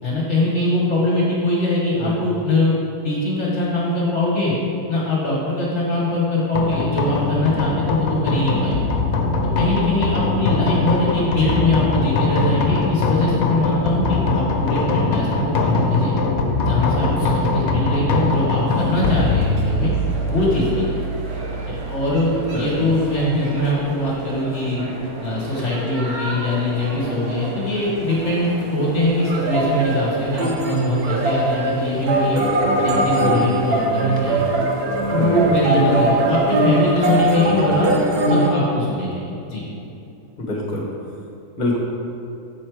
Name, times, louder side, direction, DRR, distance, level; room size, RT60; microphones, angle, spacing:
voice 1, 0.0-2.7 3.0-4.5 4.9-8.8 9.6-16.1 16.6-19.9 20.3-21.0 21.7-24.8 25.2-32.4 32.8-34.4 35.1-37.9 38.3-39.6, left 1 dB, 50° left, -5 dB, 1.7 m, -22 dB
sound 1, 6.5-23.8, left 3 dB, 65° left, 1.3 m, -22 dB
sound 2, 18.7-38.5, right 2 dB, 70° right, 1.5 m, -23 dB
voice 2, 40.4-40.8 41.6-41.8, left 2 dB, 30° left, -2 dB, 1.6 m, -25 dB
8.6 x 7.2 x 4.8 m, 2.8 s
omnidirectional pair, 1.7 m